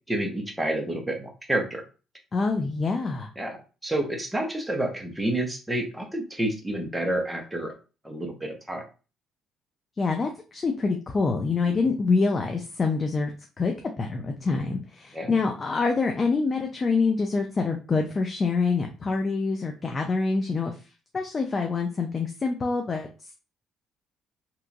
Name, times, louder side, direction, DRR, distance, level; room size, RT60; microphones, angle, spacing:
voice 1, 0.1-1.8 3.4-3.6 3.8-7.7 8.0-8.8 15.1-15.3, right 1 dB, 10° right, 2 dB, 0.6 m, -29 dB
voice 2, 2.3-3.3 10.0-13.3 13.6-20.8 21.1-23.3, left 4 dB, 30° left, 4 dB, 0.4 m, -26 dB
2.8 x 2.3 x 2.5 m, 0.33 s
cardioid pair, 110°, 0 cm